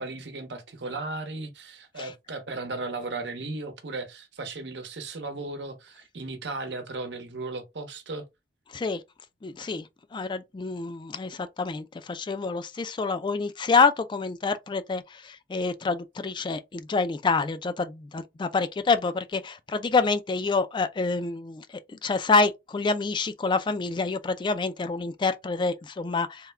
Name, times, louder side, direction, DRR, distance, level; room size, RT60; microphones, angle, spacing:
voice 1, 0.0-8.2, right 3 dB, 75° right, 0.8 m, -36 dB
voice 2, 9.4-26.5, left 4 dB, 25° left, 0.3 m, -27 dB
3.5 x 2.2 x 3.2 m
head